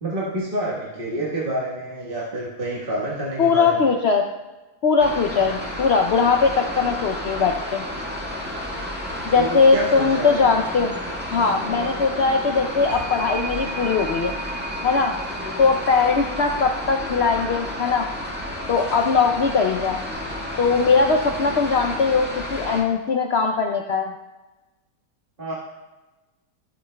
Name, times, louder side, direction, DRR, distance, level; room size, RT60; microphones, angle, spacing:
voice 1, 0.0-3.9 5.3-5.7 9.3-10.5 25.4-25.5, right 1 dB, 35° right, -6 dB, 1.6 m, -28 dB
voice 2, 3.4-4.3 4.8-7.8 9.2-10.9 11.3-14.3 14.8-15.2 15.6-18.1 18.7-20.0 20.6-24.1, left 5 dB, 65° left, 3 dB, 0.6 m, -20 dB
sound 1, 5.0-22.8, left 1 dB, 5° right, 1.4 m, -31 dB
sound 2, 12.9-23.5, right 2 dB, 85° right, 2.0 m, -40 dB
13.5 x 8.3 x 2.2 m, 1.1 s
omnidirectional pair, 1.7 m